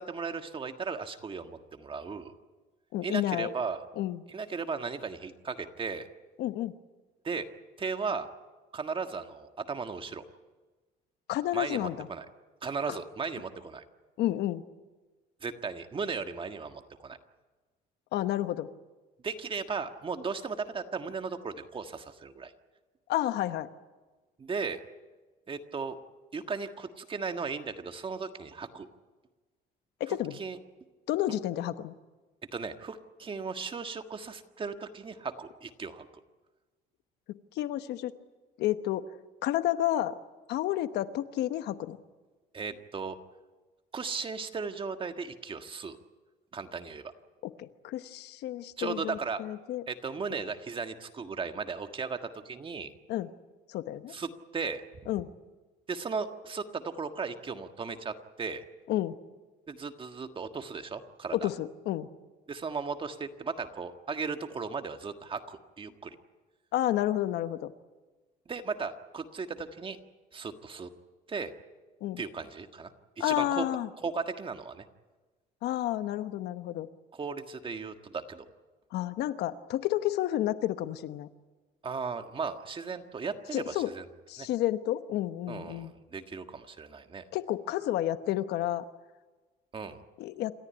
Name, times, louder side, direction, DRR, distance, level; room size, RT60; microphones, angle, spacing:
voice 1, 0.0-2.3 3.0-3.8 4.3-6.1 7.2-7.5 7.8-8.3 8.7-10.2 11.5-12.2 12.6-13.8 15.4-17.2 19.2-22.5 24.4-24.8 25.5-26.0 26.3-28.9 30.1-30.6 32.5-36.1 42.5-43.2 43.9-46.0 46.5-47.1 48.8-49.4 49.9-52.9 54.1-54.8 55.9-58.6 59.7-61.5 62.5-66.2 68.4-70.0 70.3-70.9 71.3-71.5 72.2-73.7 74.0-74.8 77.1-78.4 81.8-84.0 84.4-84.5 85.5-87.2 89.7-90.0, right 5 dB, 30° right, 7 dB, 1.7 m, -36 dB
voice 2, 2.9-3.5 4.0-4.2 6.4-6.7 11.3-12.1 14.2-14.6 18.1-18.7 23.1-23.7 30.0-30.4 31.1-31.9 37.3-38.1 38.6-39.1 39.4-40.1 40.5-42.0 47.4-49.8 53.1-53.3 53.7-54.1 55.1-55.3 58.9-59.2 61.3-62.1 66.7-67.7 72.0-72.2 73.2-73.9 75.6-76.9 78.9-81.3 83.5-83.9 84.3-85.9 87.3-88.8 90.2-90.5, left 13 dB, 80° left, 12 dB, 1.1 m, -30 dB
27.5 x 14.0 x 9.9 m, 1.3 s
cardioid pair, 110°, 17 cm